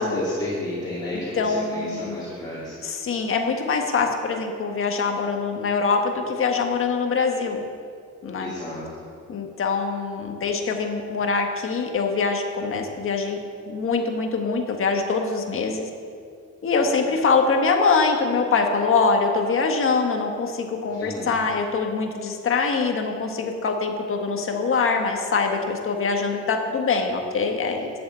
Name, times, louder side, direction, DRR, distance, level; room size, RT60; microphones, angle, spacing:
voice 1, 0.0-2.8 8.4-9.1 21.0-21.4, left 1 dB, 15° left, -9 dB, 2.6 m, -31 dB
voice 2, 1.1-2.2 2.8-7.6 8.2-8.5 9.3-13.4 13.7-15.9 16.6-27.9, left 4 dB, 45° left, 3 dB, 1.6 m, -24 dB
11.5 x 7.0 x 8.2 m, 2.3 s
cardioid pair, 140°, 30 cm